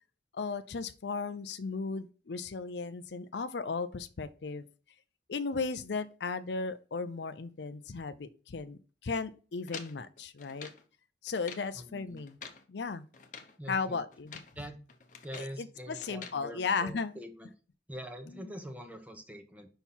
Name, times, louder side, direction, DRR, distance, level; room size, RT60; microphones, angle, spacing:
voice 1, 0.3-4.7 5.3-10.7 11.2-12.4 12.7-13.0 13.7-14.3 15.4-17.2, left 4 dB, 70° left, 0.5 m, -35 dB
sound 1, 9.7-10.9 11.3-11.7 12.2-12.7 13.1-13.6 14.1-14.6 14.9-15.6 16.0-16.4, left 6 dB, 45° left, 0.9 m, -47 dB
voice 2, 11.7-12.2 13.6-14.0 14.5-14.8 15.2-17.5 17.9-19.7, equal, 10° right, 0.9 m, -44 dB
5.7 x 4.5 x 5.5 m
head